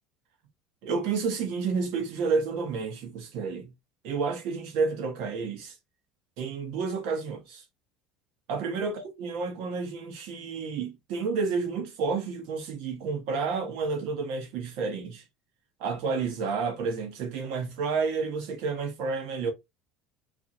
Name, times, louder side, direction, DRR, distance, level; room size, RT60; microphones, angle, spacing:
voice 1, 0.8-3.7 4.0-5.8 6.4-7.6 8.5-15.2 15.8-19.5, right 4 dB, 70° right, 1.1 m, -30 dB
2.6 x 2.4 x 2.7 m
supercardioid pair, 85°, 0 cm